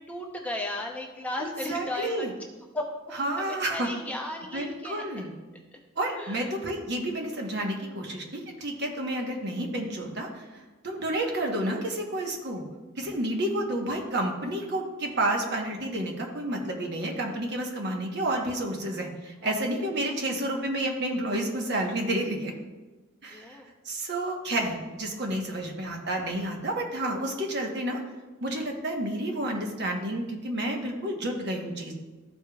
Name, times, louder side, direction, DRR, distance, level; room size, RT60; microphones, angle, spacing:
voice 1, 0.1-2.3 2.7-2.9 3.2-5.0 6.2-6.5 19.4-19.5 19.8-19.9 23.3-23.7, left 1 dB, 5° left, 0 dB, 0.6 m, -35 dB
voice 2, 1.4-2.3 3.2-3.9 4.5-5.3 6.0-12.6 13.0-22.5 23.2-23.6 23.8-28.0 28.4-31.9, right 1 dB, 50° right, 2 dB, 1.0 m, -30 dB
13.5 x 5.0 x 2.3 m, 1.2 s
head